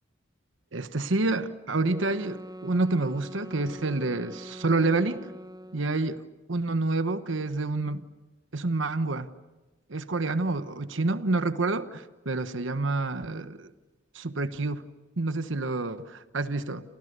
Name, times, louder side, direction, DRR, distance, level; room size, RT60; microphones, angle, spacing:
voice 1, 0.7-5.3 5.7-6.2 6.5-8.1 8.5-9.3 9.9-13.7 14.1-14.9 15.2-16.8, right 2 dB, 80° right, 12 dB, 1.1 m, -28 dB
sound 1, 1.8-6.0, equal, 20° right, 0.9 m, -43 dB
29.0 x 28.5 x 6.7 m, 1.2 s
head